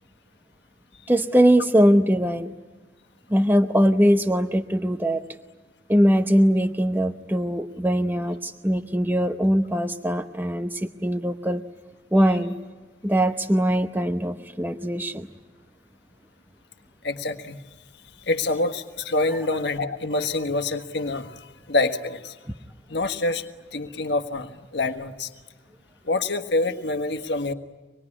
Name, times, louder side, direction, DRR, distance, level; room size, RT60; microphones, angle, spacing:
voice 1, 1.1-2.5 3.3-5.2 5.9-10.7 11.0-11.6 12.1-12.5 13.0-15.3, equal, 10° right, 6 dB, 0.7 m, -21 dB
voice 2, 17.0-17.6 18.2-21.4 21.7-22.3 22.9-25.3 26.1-27.5, left 2 dB, 60° left, 7 dB, 1.5 m, -26 dB
26.0 x 20.5 x 9.9 m, 1.3 s
head